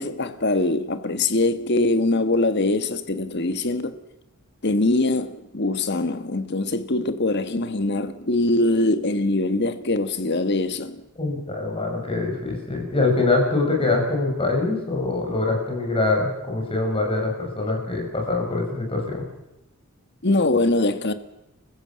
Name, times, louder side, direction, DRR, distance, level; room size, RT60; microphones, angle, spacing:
voice 1, 0.0-4.0 4.6-11.0 20.2-21.1, left 2 dB, 50° left, 1.4 m, -23 dB
voice 2, 11.1-19.2, left 3 dB, 25° left, 6.4 m, -24 dB
29.0 x 15.5 x 7.6 m
head